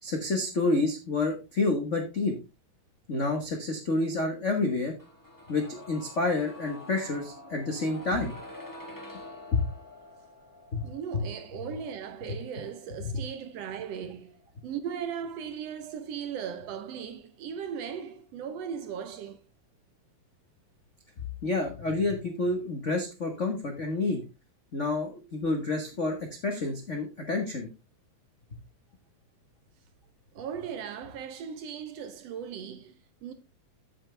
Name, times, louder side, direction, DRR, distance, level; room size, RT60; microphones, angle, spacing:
voice 1, 0.0-2.3 3.1-4.9 5.5-8.3 9.5-9.6 10.7-10.9 21.4-24.2 24.7-26.2 26.4-27.7, left 3 dB, 60° left, 0.7 m, -29 dB
sound 1, 5.0-16.8 17.1-17.2, left 1 dB, 10° left, 0.9 m, -48 dB
voice 2, 10.8-19.4 30.4-33.3, right 7 dB, 70° right, 1.8 m, -38 dB
8.6 x 8.0 x 3.3 m
omnidirectional pair, 3.3 m